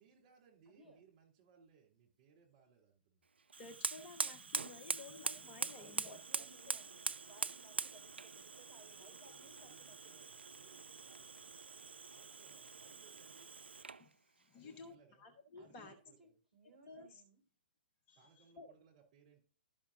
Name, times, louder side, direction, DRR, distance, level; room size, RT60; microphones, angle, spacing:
voice 1, 0.0-3.3 8.8-13.5 14.5-15.2 15.6-16.4 18.1-19.4, right 6 dB, 35° right, 0 dB, 3.1 m, -68 dB
voice 2, 0.7-1.0 5.7-10.2 15.6-17.4, right 2 dB, 5° right, -6 dB, 5.0 m, -63 dB
Fire, 3.5-14.1, right 5 dB, 70° right, 0.3 m, -43 dB
voice 3, 3.6-6.2 14.0-15.9 16.9-17.2 18.1-18.7, left 3 dB, 25° left, 6 dB, 0.8 m, -54 dB
12.5 x 5.7 x 2.7 m, 0.38 s
figure-of-eight pair, 120°, 6 cm